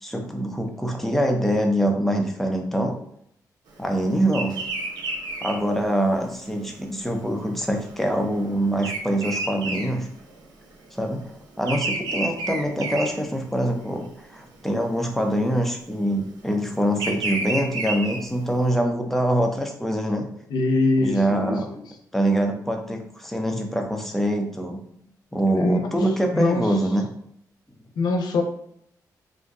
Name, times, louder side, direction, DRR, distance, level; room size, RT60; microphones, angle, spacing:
voice 1, 0.0-3.0 3.8-4.6 5.4-10.1 10.9-20.3 21.0-21.7 22.1-24.8 25.3-27.1, right 1 dB, 5° left, 2 dB, 0.5 m, -24 dB
Bird vocalization bird call bird song, 4.3-10.7 11.0-13.8 14.3-14.7 15.6-18.6, right 2 dB, 80° right, 0.7 m, -31 dB
voice 2, 20.5-21.8 25.5-25.8 26.3-26.6 28.0-28.4, left 2 dB, 80° left, 4 dB, 0.5 m, -23 dB
2.6 x 2.1 x 3.6 m, 0.70 s
cardioid pair, 90°, 7 cm